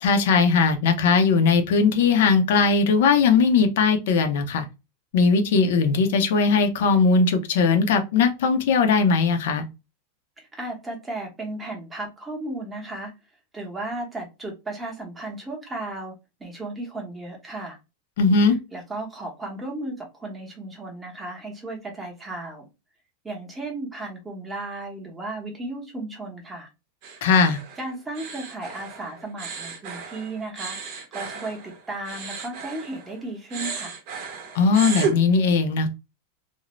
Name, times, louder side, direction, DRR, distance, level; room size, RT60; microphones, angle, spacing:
voice 1, 0.0-4.7 5.1-9.6 18.2-18.6 27.2-27.6 34.5-35.9, left 5 dB, 70° left, 6 dB, 0.5 m, -19 dB
voice 2, 10.4-13.1 13.5-16.1 16.4-17.8 18.5-22.7 23.2-26.7 27.8-34.0, right 2 dB, 10° right, 0 dB, 0.8 m, -35 dB
sound 1, 27.0-33.2 33.5-35.2, right 5 dB, 45° right, 0.7 m, -34 dB
2.5 x 2.0 x 3.0 m, 0.25 s
supercardioid pair, 165°, 0 cm